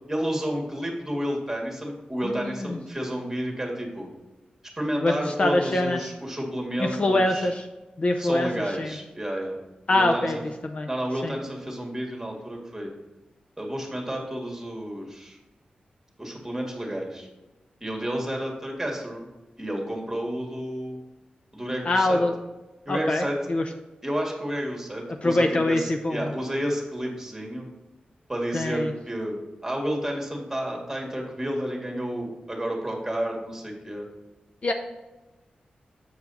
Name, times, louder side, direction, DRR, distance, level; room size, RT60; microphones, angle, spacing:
voice 1, 0.1-4.1 4.8-7.5 8.2-9.6 9.9-10.4 10.9-12.9 13.6-15.4 16.2-17.3 17.8-19.3 19.6-21.0 21.5-22.2 22.9-23.4 24.0-27.7 28.3-29.4 29.6-34.1, equal, 10° right, 0 dB, 1.9 m, -31 dB
voice 2, 2.2-2.8 5.0-6.0 6.8-7.7 8.0-8.5 8.8-8.9 9.9-10.4 10.7-10.9 11.2-11.3 21.9-22.3 22.9-23.6 25.2-26.3 28.5-28.9 34.6-34.7, left 2 dB, 45° left, 4 dB, 0.6 m, -24 dB
7.8 x 4.8 x 4.1 m, 1.1 s
wide cardioid pair, 90°, 3 cm